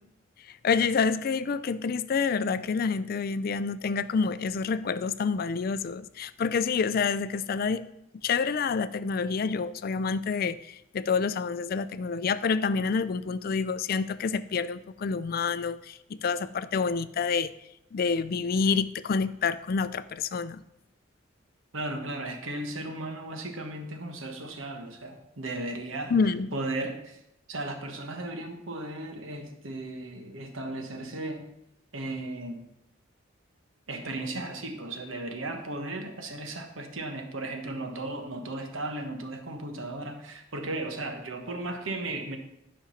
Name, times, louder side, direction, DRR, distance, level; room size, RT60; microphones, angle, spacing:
voice 1, 0.6-7.9 8.2-17.5 17.9-20.6 26.1-26.5, left 5 dB, 45° left, 15 dB, 0.4 m, -28 dB
voice 2, 21.7-26.1 26.5-27.2 27.5-31.5 31.9-32.7 33.9-42.4, right 2 dB, 85° right, 5 dB, 1.3 m, -35 dB
10.0 x 5.1 x 5.7 m, 0.82 s
head